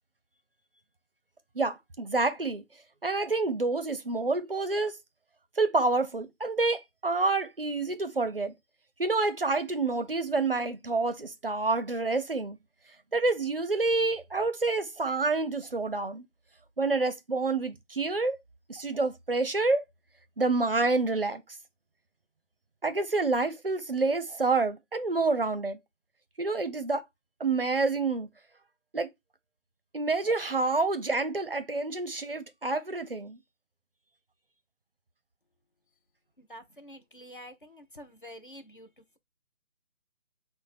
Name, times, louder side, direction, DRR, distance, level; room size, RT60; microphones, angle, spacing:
voice 1, 1.6-2.6 3.0-4.9 5.6-8.5 9.0-12.6 13.1-16.2 16.8-18.4 18.7-19.8 20.4-21.4 22.8-25.8 26.4-27.0 27.4-28.3 28.9-29.1 29.9-33.4, right 3 dB, 50° right, 0.4 m, -28 dB
voice 2, 36.4-39.2, equal, 45° left, 0.4 m, -48 dB
4.9 x 2.0 x 3.9 m
figure-of-eight pair, 170°, 38 cm